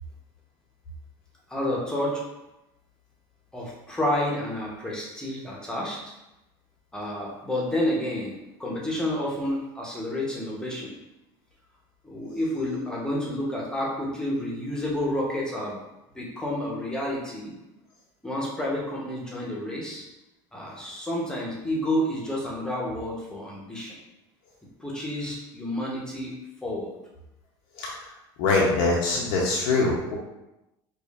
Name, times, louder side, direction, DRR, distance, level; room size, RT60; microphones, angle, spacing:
voice 1, 1.5-2.2 3.5-6.0 6.9-10.9 12.0-15.8 16.1-17.5 18.2-20.0 20.5-24.0 24.8-26.4 26.6-26.9, left 1 dB, 5° left, -4 dB, 0.8 m, -30 dB
voice 2, 28.4-30.1, left 3 dB, 75° left, -4 dB, 0.7 m, -23 dB
4.9 x 2.4 x 2.4 m, 0.94 s
cardioid pair, 130°, 10 cm